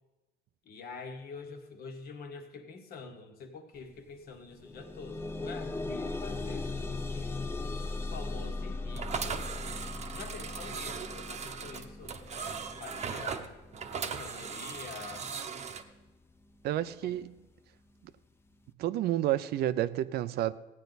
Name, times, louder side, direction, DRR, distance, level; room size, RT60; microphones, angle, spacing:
voice 1, 0.6-7.4 8.1-9.5 10.1-13.5 13.9-15.3 17.0-17.2, left 4 dB, 65° left, 1.5 m, -46 dB
sound 1, 3.8-3.9 4.3-15.3 16.1-16.2 16.7-16.8, left 3 dB, 15° left, 0.7 m, -39 dB
sound 2, 8.9-15.8, right 6 dB, 40° right, 0.9 m, -38 dB
voice 2, 16.6-17.3 18.8-20.5, right 13 dB, 70° right, 0.5 m, -30 dB
15.5 x 9.3 x 4.0 m
cardioid pair, 110°, 17 cm